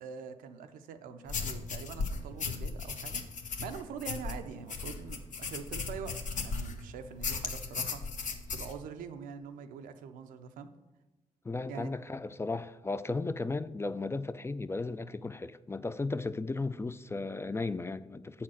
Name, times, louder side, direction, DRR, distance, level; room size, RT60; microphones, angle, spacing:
voice 1, 0.0-8.0 8.5-10.7 11.7-11.9, right 6 dB, 85° right, 0.5 m, -44 dB
sound 1, 1.3-6.8 7.2-8.7, left 4 dB, 65° left, 0.8 m, -36 dB
voice 2, 11.4-18.4, left 3 dB, 20° left, 0.3 m, -35 dB
7.2 x 4.3 x 6.1 m
supercardioid pair, 45°, 14 cm